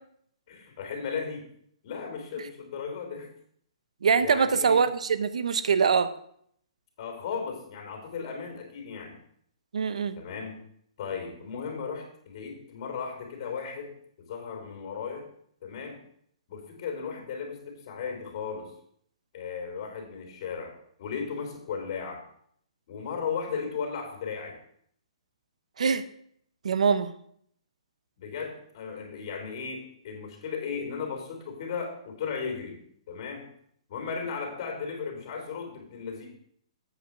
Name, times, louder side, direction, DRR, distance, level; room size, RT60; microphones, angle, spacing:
voice 1, 0.5-1.5 1.8-3.3 4.2-4.8 7.0-9.2 10.2-10.6 11.0-13.9 14.2-15.3 15.6-16.0 16.5-18.7 19.3-20.7 21.0-22.2 22.9-24.6 28.2-32.8 33.1-33.5 33.9-36.3, left 6 dB, 50° left, 3 dB, 3.5 m, -36 dB
voice 2, 4.0-6.1 9.7-10.2 25.8-26.0 26.6-27.1, right 6 dB, 75° right, 12 dB, 0.8 m, -23 dB
8.3 x 5.6 x 6.1 m, 0.67 s
hypercardioid pair, 140°, 4 cm